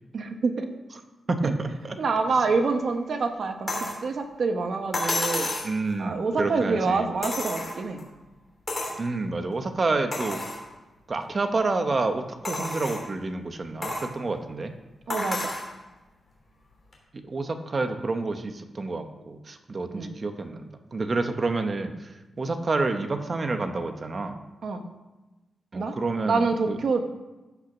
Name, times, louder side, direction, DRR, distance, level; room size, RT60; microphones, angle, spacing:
voice 1, 0.1-0.7 1.4-1.5 2.0-5.5 6.0-8.0 15.1-15.5 20.0-20.1 24.6-24.9 25.8-25.9 26.2-27.0, right 4 dB, 50° right, 6 dB, 1.1 m, -26 dB
voice 2, 1.3-2.0 5.6-7.1 9.0-10.4 11.1-14.7 17.3-22.1 22.4-24.4 25.7-26.8, right 3 dB, 30° right, 7 dB, 0.9 m, -29 dB
sound 1, 3.7-4.0 4.9-5.7 7.2-8.0 8.7-9.0 9.5-9.6 10.1-10.6 11.2-11.3 12.4-13.1 13.8-14.1 15.1-15.7 16.9-17.0, left 1 dB, 25° left, 2.9 m, -30 dB
14.5 x 5.7 x 6.0 m, 1.1 s
wide cardioid pair, 175°, 0 cm